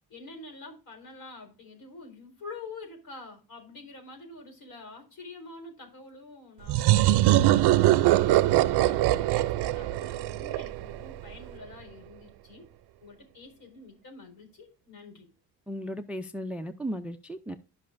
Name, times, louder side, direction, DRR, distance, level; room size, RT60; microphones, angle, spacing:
voice 1, 0.1-8.0 8.6-12.7 13.0-15.3, left 3 dB, 60° left, 3 dB, 4.4 m, -47 dB
sound 1, 6.7-11.2, right 15 dB, 75° right, 0.6 m, -22 dB
voice 2, 15.7-17.6, equal, 5° right, 10 dB, 0.4 m, -35 dB
13.0 x 5.6 x 2.5 m, 0.33 s
cardioid pair, 140°, 40 cm